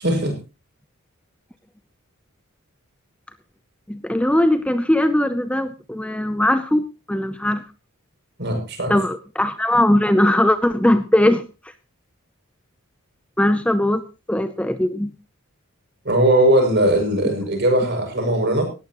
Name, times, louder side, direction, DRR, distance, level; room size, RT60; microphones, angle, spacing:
voice 1, 0.0-0.4 8.4-8.9 16.0-18.6, right 1 dB, 50° right, 3 dB, 6.7 m, -19 dB
voice 2, 3.9-7.6 8.9-11.5 13.4-14.0 14.3-15.1, left 1 dB, 5° left, 11 dB, 0.6 m, -19 dB
18.5 x 14.5 x 3.1 m, 0.30 s
head